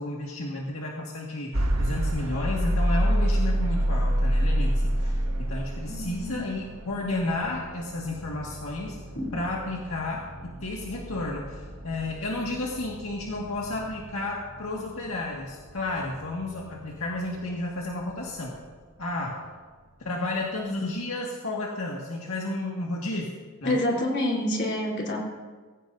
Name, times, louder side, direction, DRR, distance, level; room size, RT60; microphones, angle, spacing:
voice 1, 0.0-9.0 9.3-18.6 19.0-19.4 20.0-23.3 23.6-23.8, left 2 dB, 75° left, -3 dB, 1.8 m, -32 dB
sound 1, 1.5-17.5, equal, 70° right, 1.4 m, -29 dB
voice 2, 5.9-6.5 9.1-9.3 23.6-25.2, left 1 dB, 50° left, -3 dB, 3.6 m, -27 dB
23.0 x 15.5 x 2.7 m, 1.4 s
head